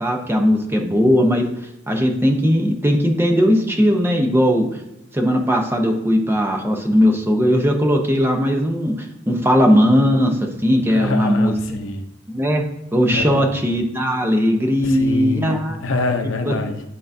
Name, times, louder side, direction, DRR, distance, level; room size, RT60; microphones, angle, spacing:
voice 1, 0.0-1.4 1.9-4.8 5.1-8.9 9.3-11.5 12.3-12.6 12.9-15.8 16.5-16.6, equal, 10° right, 2 dB, 0.8 m, -18 dB
voice 2, 10.9-12.0 13.1-13.5 14.8-16.8, left 2 dB, 85° left, 5 dB, 0.8 m, -25 dB
11.0 x 3.8 x 2.7 m, 0.88 s
head